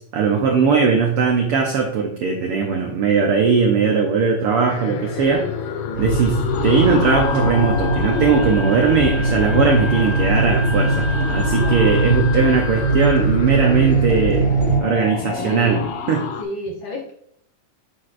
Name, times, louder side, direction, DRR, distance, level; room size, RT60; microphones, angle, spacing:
voice 1, 0.0-5.5 6.0-15.8 16.1-16.2, right 5 dB, 80° right, 2 dB, 1.2 m, -19 dB
sound 1, 4.7-16.4, left 6 dB, 90° left, 1.3 m, -29 dB
voice 2, 5.9-6.2 11.6-11.9 15.2-15.9 16.4-17.1, left 2 dB, 75° left, 0 dB, 1.1 m, -31 dB
sound 2, 5.9-14.8, right 2 dB, 30° right, 1.7 m, -21 dB
Wind instrument woodwind instrument, 7.0-13.3, left 2 dB, 5° right, 1.4 m, -32 dB
8.1 x 6.1 x 2.5 m, 0.67 s
omnidirectional pair, 3.5 m